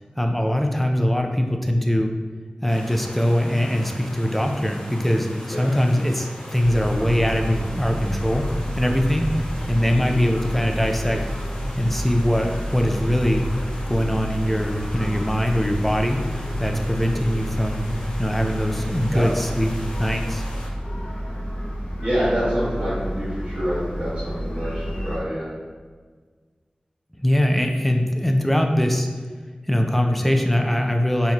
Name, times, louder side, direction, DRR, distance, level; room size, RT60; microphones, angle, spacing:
voice 1, 0.2-2.1 2.6-8.5 8.7-11.2 11.8-13.5 13.9-17.8 18.2-19.7 20.0-20.4 27.2-29.1 29.7-31.3, equal, 5° left, 3 dB, 0.4 m, -22 dB
sound 1, 2.7-20.7, equal, 35° left, 0.9 m, -40 dB
sound 2, 6.6-25.2, equal, 65° left, 0.8 m, -29 dB
voice 2, 22.0-25.5, equal, 45° right, -12 dB, 1.3 m, -26 dB
4.0 x 2.9 x 2.7 m, 1.5 s
wide cardioid pair, 60°, 3 cm